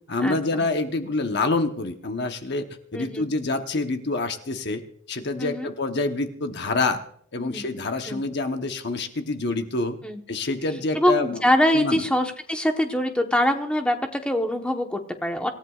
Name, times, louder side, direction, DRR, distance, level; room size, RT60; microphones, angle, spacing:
voice 1, 0.1-2.7 2.9-4.8 5.1-7.0 7.3-10.0 10.3-11.4 11.7-12.0, left 3 dB, 55° left, 6 dB, 1.0 m, -26 dB
voice 2, 2.9-3.3 5.4-5.7 7.4-7.6 8.0-8.2 10.0-10.2 10.9-15.5, equal, 5° left, 4 dB, 1.1 m, -24 dB
26.0 x 14.5 x 2.4 m, 0.62 s
head